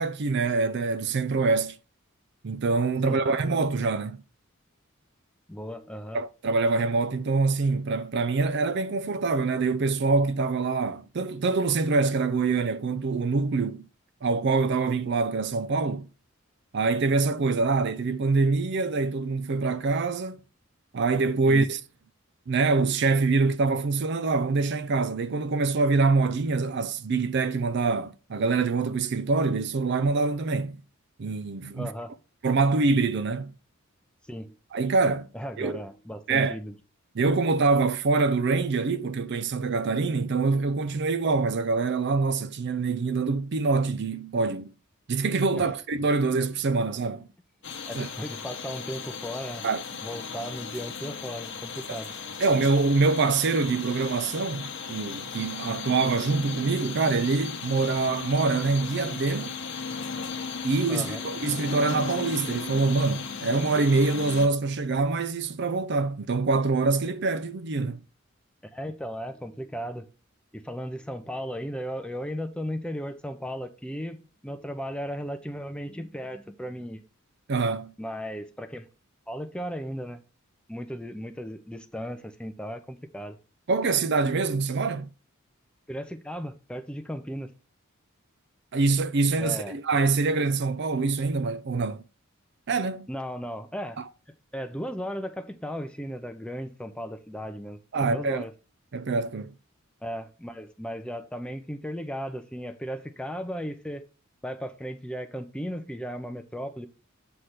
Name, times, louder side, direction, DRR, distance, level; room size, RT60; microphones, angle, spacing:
voice 1, 0.0-1.8 2.4-4.2 6.1-13.8 14.2-16.1 16.7-20.4 20.9-21.8 22.5-30.8 31.2-31.9 32.4-33.5 34.7-35.3 35.6-35.8 36.3-36.6 37.1-44.7 45.1-47.3 47.9-48.1 49.6-49.8 51.9-52.0 52.4-59.5 60.6-68.0 77.5-77.9 83.7-85.1 88.7-92.0 92.7-93.1 94.0-94.1 97.9-98.5 98.9-99.5, right 4 dB, 55° right, 0.5 m, -25 dB
voice 2, 5.5-6.2 21.5-21.7 31.7-32.1 34.3-34.5 35.3-36.7 45.5-45.7 47.9-49.7 50.0-52.1 60.9-61.2 68.7-70.1 70.5-77.0 78.0-78.9 79.3-80.2 80.7-83.4 85.9-87.5 89.4-89.8 93.1-94.0 94.5-98.5 100.0-104.0 104.4-106.9, equal, 5° left, 0.6 m, -36 dB
sound 1, 47.6-64.5, left 5 dB, 55° left, 1.0 m, -36 dB
7.9 x 3.3 x 5.7 m
head